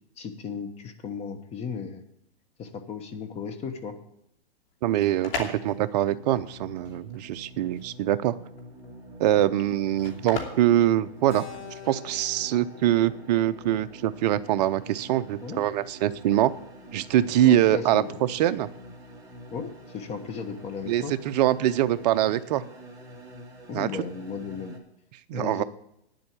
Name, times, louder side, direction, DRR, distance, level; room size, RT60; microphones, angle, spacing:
voice 1, 0.2-2.0 2.6-4.0 9.4-9.5 15.4-15.6 17.4-18.2 19.5-21.1 23.7-24.8 25.3-25.6, left 6 dB, 20° left, 7 dB, 1.1 m, -35 dB
sound 1, 4.7-11.8, left 5 dB, 60° left, 2.8 m, -39 dB
voice 2, 4.8-8.3 9.2-11.5 11.9-16.5 16.9-18.0 18.3-18.7 20.9-22.6 23.7-23.9 25.3-25.6, right 12 dB, 40° right, 11 dB, 0.6 m, -23 dB
sound 2, 5.2-24.8, equal, 10° right, 2.2 m, -46 dB
Keyboard (musical), 11.3-15.7, left 9 dB, 35° left, 5.2 m, -48 dB
9.8 x 7.7 x 8.4 m, 0.79 s
hypercardioid pair, 145°, 32 cm